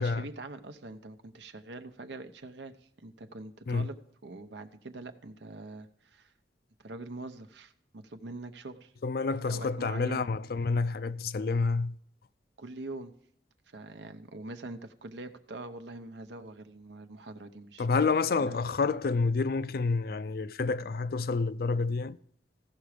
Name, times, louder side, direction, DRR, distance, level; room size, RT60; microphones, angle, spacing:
voice 1, 0.0-2.7 3.0-4.0 4.2-6.3 6.8-8.9 9.4-10.3 12.6-13.1 13.7-18.0 18.4-18.6, right 2 dB, 85° right, 0.8 m, -44 dB
voice 2, 9.0-12.0 17.8-22.2, left 4 dB, 55° left, 0.4 m, -29 dB
15.0 x 5.9 x 5.0 m
head